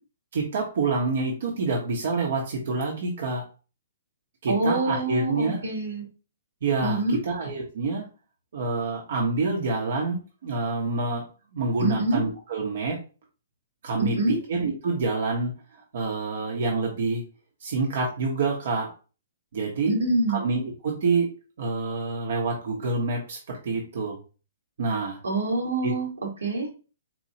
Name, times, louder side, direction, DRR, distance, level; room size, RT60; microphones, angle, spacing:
voice 1, 0.3-3.4 4.4-5.6 6.6-8.1 8.5-11.2 11.5-13.0 13.8-17.2 17.6-18.9 19.5-20.0 20.3-24.2 24.8-25.2 25.8-25.9, right 3 dB, 65° right, -1 dB, 0.9 m, -27 dB
voice 2, 4.5-6.0 6.8-7.2 11.8-12.2 14.0-14.4 19.9-20.4 25.2-26.1 26.4-26.7, right 2 dB, 85° right, 1 dB, 1.3 m, -25 dB
4.3 x 2.4 x 2.8 m, 0.34 s
hypercardioid pair, 135°, 0 cm